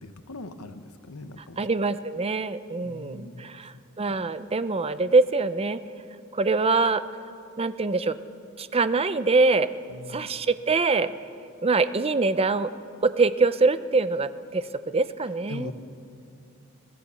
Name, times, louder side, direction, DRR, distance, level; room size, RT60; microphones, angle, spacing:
voice 1, 0.0-1.7 2.8-3.8 4.1-4.2 9.9-10.4 15.5-15.7, left 2 dB, 85° left, 9 dB, 1.1 m, -41 dB
voice 2, 1.6-5.8 6.3-7.0 7.6-8.2 8.6-9.7 10.1-11.1 11.6-12.7 13.0-15.7, right 3 dB, 25° right, 12 dB, 0.6 m, -24 dB
22.5 x 17.0 x 7.0 m, 2.5 s
head